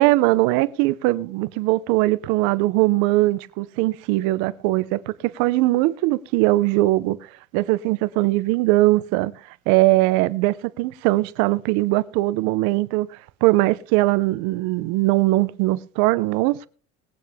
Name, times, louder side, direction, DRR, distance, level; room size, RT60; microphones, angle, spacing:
voice 1, 0.0-7.2 7.5-9.3 9.7-13.1 13.4-16.7, right 19 dB, 85° right, 0.7 m, -20 dB
21.0 x 8.7 x 3.6 m
cardioid pair, 150°, 29 cm